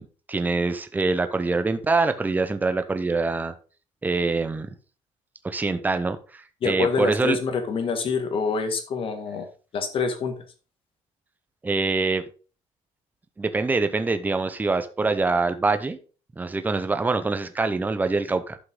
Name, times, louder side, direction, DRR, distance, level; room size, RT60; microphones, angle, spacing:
voice 1, 0.0-3.5 4.0-4.7 5.4-7.4 11.6-12.2 13.4-16.0 16.4-18.6, right 3 dB, 15° right, 9 dB, 0.7 m, -24 dB
voice 2, 6.6-9.5 9.7-10.4, left 5 dB, 45° left, 6 dB, 1.9 m, -26 dB
11.5 x 5.8 x 3.7 m, 0.36 s
cardioid pair, 140°, 12 cm